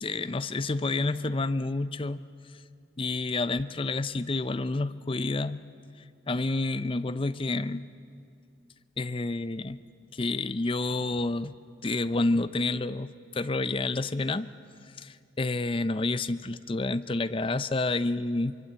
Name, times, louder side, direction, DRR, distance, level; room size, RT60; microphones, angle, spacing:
voice 1, 0.0-2.2 3.0-5.6 6.3-7.9 9.0-9.8 10.1-11.6 11.8-14.5 15.0-18.6, left 2 dB, 25° left, 14 dB, 0.5 m, -29 dB
24.5 x 24.0 x 8.2 m, 2.4 s
head